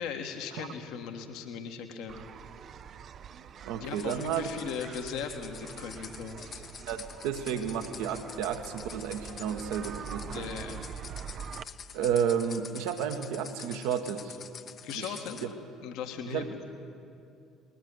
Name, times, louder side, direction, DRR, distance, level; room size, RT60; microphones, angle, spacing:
voice 1, 0.0-2.2 3.7-6.6 10.2-10.8 14.8-15.5 15.8-16.6, left 7 dB, 65° left, 5 dB, 1.6 m, -38 dB
sound 1, 2.1-11.6, right 8 dB, 45° right, 0.6 m, -44 dB
voice 2, 3.3-4.5 6.9-10.5 11.9-14.4 14.9-15.5 16.3-16.5, right 8 dB, 65° right, 7 dB, 1.4 m, -32 dB
sound 2, 4.0-15.5, left 7 dB, 45° left, 0.9 m, -47 dB
20.0 x 14.5 x 9.6 m, 2.5 s
figure-of-eight pair, 55°, 0 cm